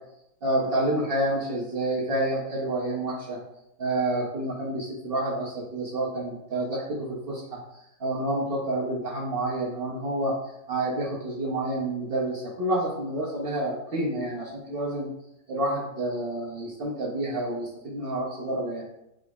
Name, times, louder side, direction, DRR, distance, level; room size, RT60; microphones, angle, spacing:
voice 1, 0.4-3.4 3.8-10.4 10.7-15.1 15.5-18.8, right 1 dB, 60° right, -6 dB, 0.6 m, -29 dB
4.8 x 2.0 x 3.5 m, 0.83 s
omnidirectional pair, 1.9 m